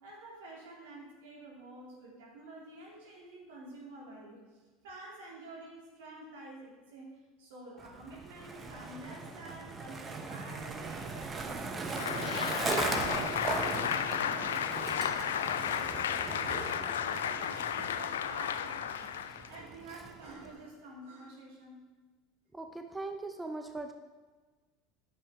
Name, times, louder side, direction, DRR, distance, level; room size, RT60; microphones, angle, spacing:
voice 1, 0.0-11.7 12.0-14.8 15.1-15.9 16.3-19.1 19.5-21.9, right 2 dB, 75° right, -4 dB, 3.1 m, -49 dB
Skateboard, 7.8-20.5, right 4 dB, 25° right, 1.0 m, -39 dB
Applause, 11.8-19.6, left 9 dB, 80° left, 0.4 m, -33 dB
voice 2, 22.5-23.9, right 2 dB, 10° right, 5 dB, 0.6 m, -40 dB
10.0 x 6.9 x 3.7 m, 1.3 s
hypercardioid pair, 80°, 0 cm